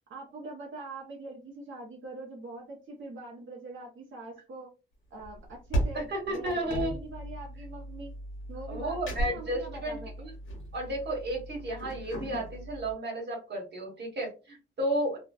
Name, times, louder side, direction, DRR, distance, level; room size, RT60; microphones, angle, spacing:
voice 1, 0.1-4.7 5.1-8.1 8.5-10.3, right 2 dB, 75° right, -2 dB, 0.7 m, -43 dB
sound 1, 5.2-12.9, right 1 dB, 80° left, 0.9 m, -36 dB
voice 2, 5.9-7.0 8.7-10.0 10.7-15.2, right 1 dB, 60° right, 0 dB, 1.1 m, -33 dB
2.5 x 2.1 x 2.3 m, 0.30 s
wide cardioid pair, 150°, 20 cm